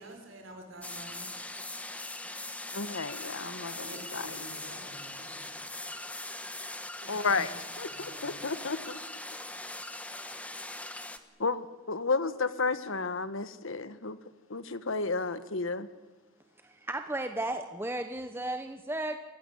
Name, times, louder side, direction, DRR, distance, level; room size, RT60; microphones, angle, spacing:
voice 1, 0.0-1.4 3.8-5.6 7.0-7.4 7.9-8.4, right 1 dB, 60° right, 5.6 m, -49 dB
sound 1, 0.8-11.2, left 2 dB, 5° left, 1.2 m, -41 dB
voice 2, 2.7-4.4 7.1-7.5 7.8-9.0 11.4-14.2 14.5-15.9, left 4 dB, 65° left, 1.3 m, -32 dB
voice 3, 16.6-19.2, right 1 dB, 10° right, 0.9 m, -34 dB
26.5 x 15.5 x 10.0 m
head